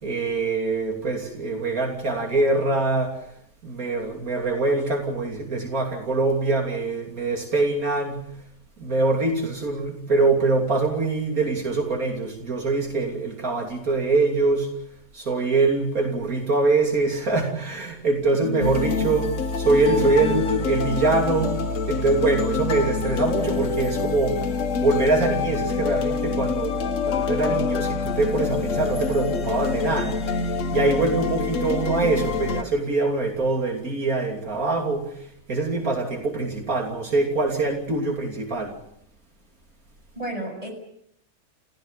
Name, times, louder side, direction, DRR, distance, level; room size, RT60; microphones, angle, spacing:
voice 1, 0.0-3.3 3.6-8.2 8.8-14.7 15.1-19.3 19.6-21.6 21.9-24.4 24.8-38.7, right 3 dB, 80° right, 2 dB, 3.5 m, -24 dB
voice 2, 18.4-19.2 40.2-40.7, right 1 dB, 25° right, 1 dB, 7.1 m, -33 dB
sound 1, 18.6-32.6, left 5 dB, 60° left, 1.5 m, -26 dB
29.5 x 16.0 x 8.2 m, 0.72 s
omnidirectional pair, 1.5 m